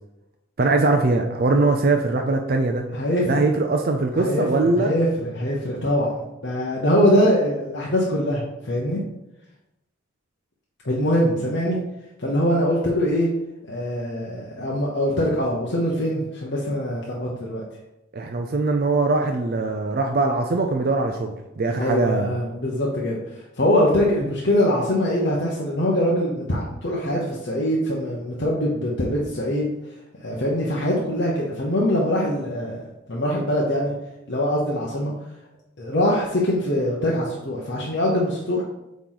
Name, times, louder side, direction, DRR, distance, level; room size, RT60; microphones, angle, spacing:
voice 1, 0.6-2.9 3.3-4.9 18.1-22.3, right 3 dB, 45° right, 4 dB, 0.4 m, -21 dB
voice 2, 2.9-3.4 4.2-9.0 10.8-11.8 12.2-13.3 13.7-17.6 21.7-29.7 30.2-32.8 33.1-33.9 34.3-35.1 35.8-38.6, equal, 60° left, -4 dB, 0.9 m, -23 dB
8.2 x 3.1 x 3.9 m, 0.94 s
head